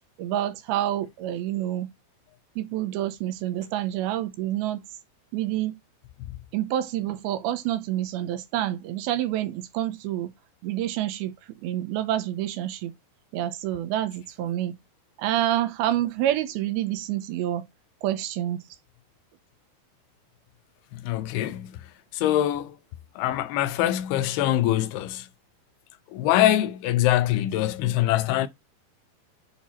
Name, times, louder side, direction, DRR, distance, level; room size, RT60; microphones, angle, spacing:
voice 1, 0.2-1.9 2.6-4.8 5.3-5.7 6.5-10.3 10.6-11.3 11.6-12.9 13.3-14.8 15.2-17.6 18.0-18.6, right 12 dB, 85° right, 2.5 m, -28 dB
voice 2, 20.9-21.8 22.1-22.8 23.2-25.3 26.1-28.5, left 13 dB, 90° left, 2.6 m, -24 dB
8.4 x 2.8 x 4.2 m
omnidirectional pair, 4.4 m